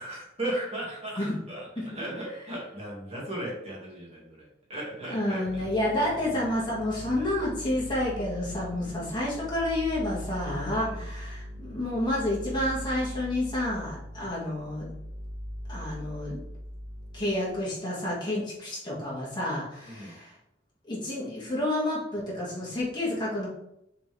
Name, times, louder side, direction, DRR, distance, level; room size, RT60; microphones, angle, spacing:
voice 1, 0.0-5.6 10.7-11.1 19.9-20.1, right 1 dB, 35° right, -5 dB, 2.3 m, -36 dB
voice 2, 5.1-14.9 15.7-16.4 17.1-20.3 20.9-23.5, left 1 dB, 25° left, -6 dB, 2.1 m, -30 dB
sound 1, 5.4-17.6, equal, 85° right, 1.3 m, -40 dB
6.8 x 4.1 x 3.6 m, 0.79 s
head